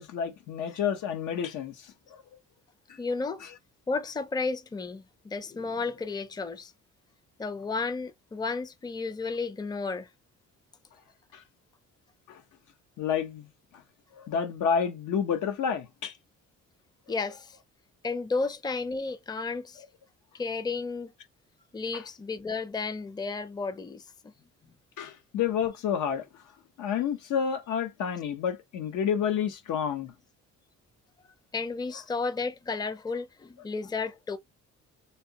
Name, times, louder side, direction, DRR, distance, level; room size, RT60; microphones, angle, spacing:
voice 1, 0.0-2.2 3.4-3.5 11.3-11.4 12.3-12.4 13.0-13.5 14.1-16.1 21.9-22.0 25.0-26.4 26.8-30.1, left 7 dB, 80° left, 0.9 m, -30 dB
voice 2, 3.0-3.4 3.9-6.7 7.4-10.1 17.1-17.6 18.0-19.8 20.3-21.1 21.7-24.3 31.5-34.4, left 4 dB, 15° left, 0.5 m, -33 dB
3.4 x 2.7 x 2.8 m
cardioid pair, 90°, 30 cm